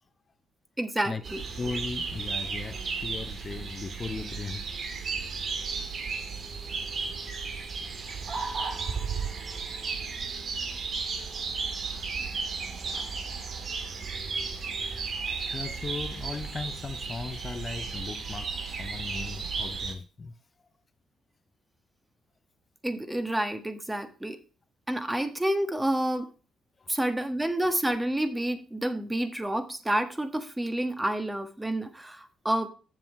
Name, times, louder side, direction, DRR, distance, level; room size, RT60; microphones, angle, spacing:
voice 1, 0.8-1.4 22.8-24.4 24.9-26.3 26.9-32.7, right 1 dB, 10° right, 1.4 m, -29 dB
sound 1, 1.2-19.9, right 5 dB, 50° right, 1.8 m, -34 dB
voice 2, 1.6-4.7 15.5-20.4 26.8-26.9, left 4 dB, 35° left, 0.6 m, -37 dB
7.9 x 7.1 x 4.5 m
cardioid pair, 90°, 0 cm